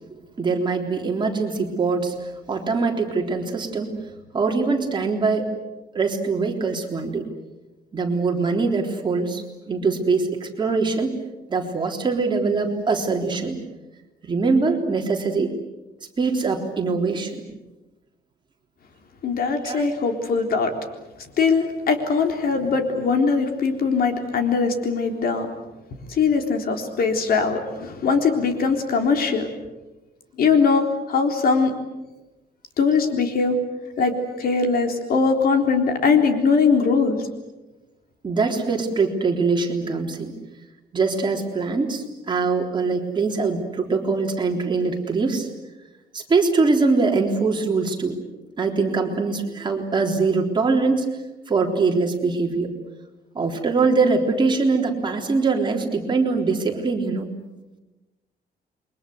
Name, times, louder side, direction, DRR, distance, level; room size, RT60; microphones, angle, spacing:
voice 1, 0.4-4.0 4.3-5.5 5.9-7.3 7.9-11.2 11.5-13.6 14.2-15.5 16.2-17.4 19.6-19.9 38.2-40.3 40.9-45.5 46.1-48.2 48.6-51.1 51.5-52.7 53.3-57.3, right 4 dB, 25° right, 2 dB, 3.8 m, -23 dB
voice 2, 19.2-20.7 21.4-25.5 26.1-29.5 30.4-31.7 32.8-33.6 34.0-37.2, left 5 dB, 65° left, 5 dB, 3.8 m, -21 dB
29.5 x 23.5 x 8.0 m, 1.1 s
cardioid pair, 155°, 17 cm